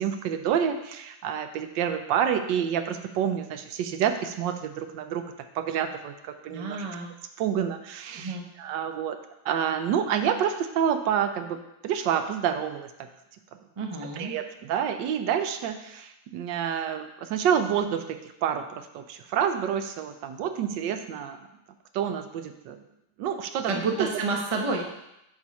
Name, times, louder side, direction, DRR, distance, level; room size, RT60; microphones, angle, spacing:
voice 1, 0.0-5.2 5.5-6.9 7.4-9.2 9.4-11.6 11.8-12.9 14.2-21.4 21.9-22.8 23.2-23.7 24.0-24.1, right 8 dB, 80° right, 8 dB, 1.2 m, -28 dB
voice 2, 6.5-7.1 8.2-8.4 13.8-14.3 23.6-24.8, right 3 dB, 40° right, 1 dB, 0.4 m, -29 dB
9.6 x 3.9 x 4.2 m, 0.87 s
omnidirectional pair, 2.0 m